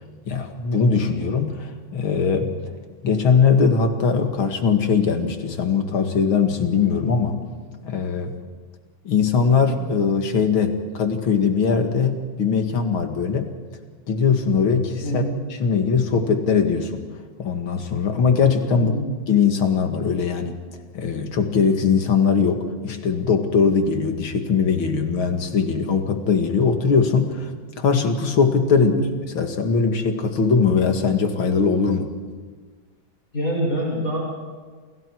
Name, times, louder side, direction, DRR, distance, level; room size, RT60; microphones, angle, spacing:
voice 1, 0.3-2.5 3.0-7.4 7.8-8.4 9.0-13.5 14.1-15.2 15.6-17.0 17.4-18.9 19.3-20.6 20.9-27.5 27.8-28.9 29.3-32.1, left 5 dB, 80° left, 5 dB, 2.8 m, -20 dB
voice 2, 18.7-19.1 28.7-29.1 33.3-34.2, right 1 dB, 40° left, -3 dB, 7.4 m, -25 dB
29.5 x 28.0 x 4.7 m, 1.5 s
omnidirectional pair, 2.2 m